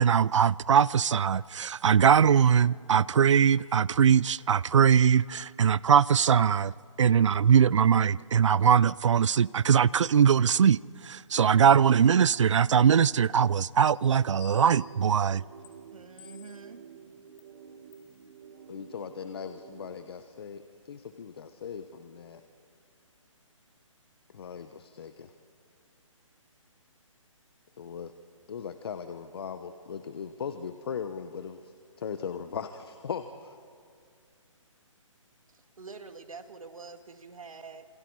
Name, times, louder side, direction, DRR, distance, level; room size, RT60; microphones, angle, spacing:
voice 1, 0.0-6.7 7.0-10.8 11.0-15.4, right 7 dB, 65° right, 0.5 m, -21 dB
sound 1, 13.9-14.0 14.4-15.0 15.6-15.7 16.2-16.7 17.4-17.5 17.9-18.1, left 14 dB, 15° left, 0.8 m, -52 dB
sound 2, 14.1-20.1, right 7 dB, 40° right, 1.6 m, -50 dB
voice 2, 15.9-16.8 35.5-37.9, right 4 dB, 85° right, 2.0 m, -46 dB
voice 3, 18.7-22.4 24.3-25.3 27.8-28.1 28.5-33.5, left 7 dB, 50° left, 1.1 m, -39 dB
28.0 x 27.0 x 4.8 m
hypercardioid pair, 160°, 17 cm